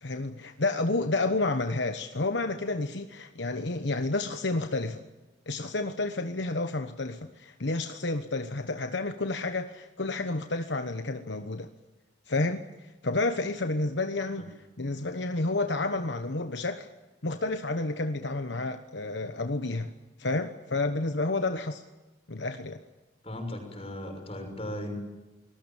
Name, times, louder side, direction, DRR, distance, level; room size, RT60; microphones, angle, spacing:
voice 1, 0.0-5.0 5.5-11.7 12.3-16.9 17.2-19.9 20.2-21.8 22.3-22.8, left 2 dB, 70° left, 8 dB, 1.2 m, -30 dB
voice 2, 23.2-24.9, left 1 dB, 30° left, 4 dB, 6.2 m, -37 dB
28.0 x 20.5 x 7.4 m, 1.1 s
head